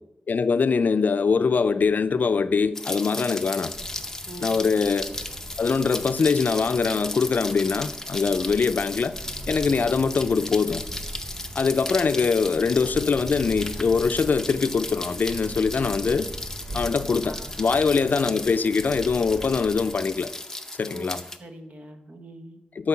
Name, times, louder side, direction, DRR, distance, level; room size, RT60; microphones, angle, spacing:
voice 1, 0.3-3.7 4.4-5.1 5.6-9.1 9.5-10.8 11.6-16.3 16.7-20.3 20.8-21.2 22.8-22.9, left 5 dB, 65° left, 0.4 m, -23 dB
Rain, 2.7-21.4, left 1 dB, 15° left, 0.7 m, -36 dB
sound 1, 3.7-20.0, right 1 dB, 85° right, 2.5 m, -41 dB
voice 2, 4.3-4.7 9.7-9.9 12.1-12.3 17.2-17.7 20.9-22.6, right 1 dB, 50° right, 1.0 m, -43 dB
12.0 x 4.6 x 5.8 m
wide cardioid pair, 110°, 3 cm